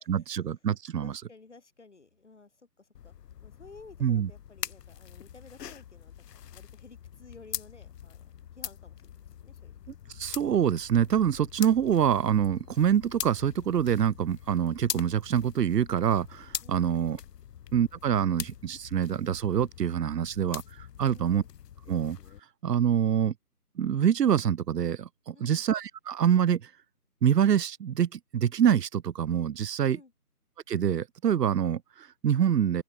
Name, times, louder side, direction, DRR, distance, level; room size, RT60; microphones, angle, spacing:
voice 1, 0.1-1.2 4.0-4.3 10.2-17.2 17.7-20.6 21.0-21.4 21.9-22.2 22.6-23.3 23.8-26.7 27.2-30.0 30.7-32.8, right 9 dB, 85° right, 0.6 m, -25 dB
voice 2, 1.0-3.1 3.4-9.8 16.6-17.2 21.0-21.5 25.3-25.6 29.8-30.1, left 3 dB, 45° left, 3.4 m, -54 dB
sound 1, 2.9-22.4, left 10 dB, 90° left, 0.6 m, -43 dB
open air
figure-of-eight pair, 180°, 47 cm